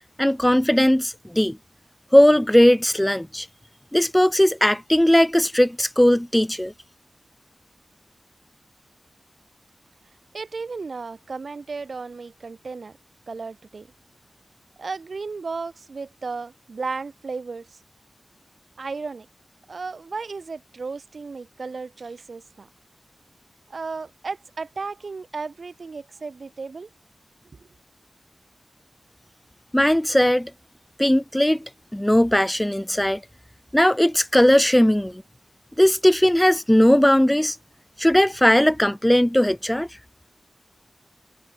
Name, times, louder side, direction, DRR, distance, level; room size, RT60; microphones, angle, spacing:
voice 1, 0.2-1.6 2.1-3.5 3.9-6.7 29.7-30.5 31.0-31.6 31.9-33.2 33.7-35.2 35.8-37.6 38.0-39.9, equal, 10° left, 0.3 m, -18 dB
voice 2, 10.3-13.0 13.3-13.9 14.8-17.8 18.8-19.3 19.7-22.7 23.7-26.9, right 4 dB, 70° right, 4.8 m, -34 dB
wide cardioid pair, 70°, 0 cm